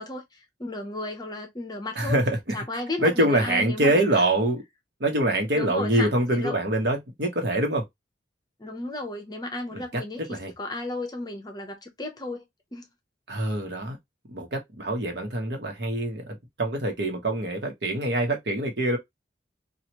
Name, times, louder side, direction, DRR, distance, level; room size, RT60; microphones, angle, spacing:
voice 1, 0.0-2.2 2.5-4.0 5.5-6.1 6.3-6.6 8.6-12.4 12.7-12.9, left 2 dB, 20° left, 0.8 m, -34 dB
voice 2, 1.9-2.6 3.0-4.6 5.0-7.8 9.7-10.0 10.3-10.5 13.3-14.0 14.3-19.0, right 1 dB, 65° right, 1.1 m, -25 dB
3.1 x 2.5 x 2.9 m
head